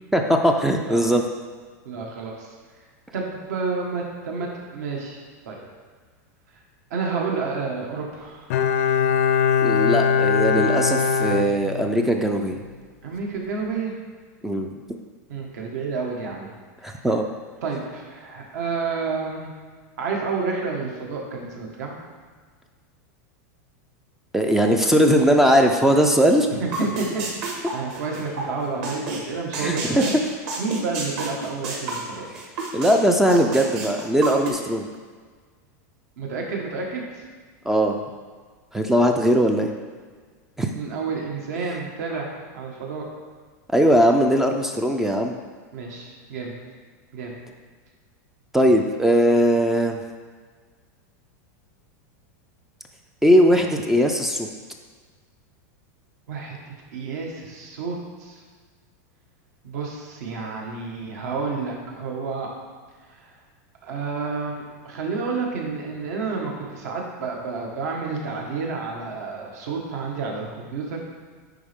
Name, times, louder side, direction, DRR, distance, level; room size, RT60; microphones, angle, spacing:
voice 1, 0.1-1.2 9.6-12.6 14.4-14.8 16.8-17.3 24.3-26.5 29.6-30.0 32.3-32.4 32.7-34.9 37.7-38.0 38.7-39.7 40.6-40.7 43.7-45.4 48.5-50.0 53.2-54.5, equal, 5° right, 3 dB, 0.3 m, -19 dB
voice 2, 1.8-2.5 3.1-5.6 6.9-8.5 13.0-13.9 15.3-16.5 16.9-17.1 17.6-19.5 20.0-21.9 26.6-30.1 30.6-32.3 36.2-37.2 40.7-42.3 42.5-43.1 45.7-46.5 47.1-47.3 56.3-58.4 59.6-62.5 63.1-63.3 63.8-71.1, right 4 dB, 70° right, 0 dB, 1.6 m, -30 dB
Bowed string instrument, 8.5-12.2 12.5-12.6, left 7 dB, 60° left, 0.5 m, -21 dB
sound 1, 26.7-28.5 28.8-29.2 29.5-32.9 33.3-34.5, right 3 dB, 45° right, 1.4 m, -30 dB
10.5 x 4.0 x 3.6 m, 1.5 s
supercardioid pair, 165°, 9 cm